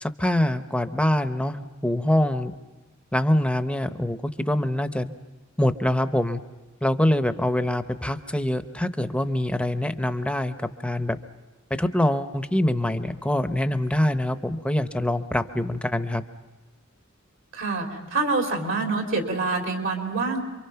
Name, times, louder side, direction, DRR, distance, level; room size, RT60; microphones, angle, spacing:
voice 1, 0.0-2.5 3.1-5.1 5.6-6.4 6.8-10.5 10.8-11.2 11.7-16.2, left 1 dB, 5° left, 9 dB, 0.8 m, -24 dB
voice 2, 17.5-20.4, right 3 dB, 70° right, 2 dB, 3.7 m, -26 dB
27.5 x 24.0 x 5.7 m, 1.2 s
head